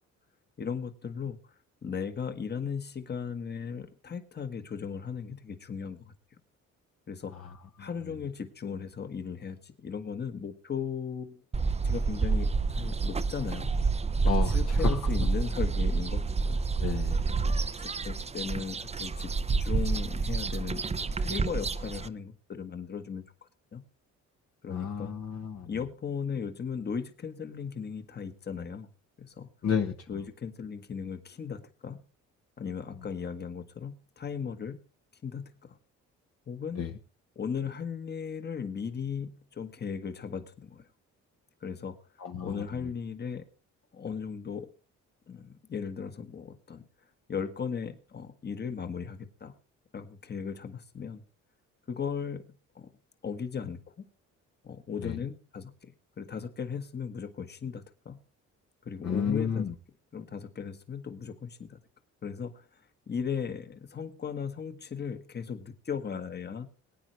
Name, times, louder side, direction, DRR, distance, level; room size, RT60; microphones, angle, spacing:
voice 1, 0.6-1.4 1.8-6.1 7.1-7.5 7.8-11.4 11.8-13.7 14.2-16.6 17.4-17.5 18.0-19.3 19.6-23.2 23.7-23.8 24.6-25.1 25.7-28.9 29.2-29.5 30.1-32.0 32.6-34.8 35.2-35.8 36.5-36.9 37.3-40.9 41.6-42.0 42.4-43.5 43.9-44.7 45.3-46.9 47.3-49.5 49.9-51.2 51.9-52.9 53.2-54.1 54.6-58.2 58.8-59.7 60.1-61.8 62.2-62.6 63.1-66.7, left 6 dB, 35° left, 9 dB, 1.4 m, -37 dB
voice 2, 7.8-8.1 14.2-15.0 16.8-17.3 24.7-25.7 29.6-29.9 36.8-36.9 42.2-42.9 55.0-55.2 59.0-59.7, left 7 dB, 55° left, 4 dB, 1.1 m, -32 dB
sound 1, 11.5-22.1, right 4 dB, 20° right, 0.6 m, -28 dB
21.0 x 9.2 x 3.1 m, 0.32 s
cardioid pair, 90°, 30 cm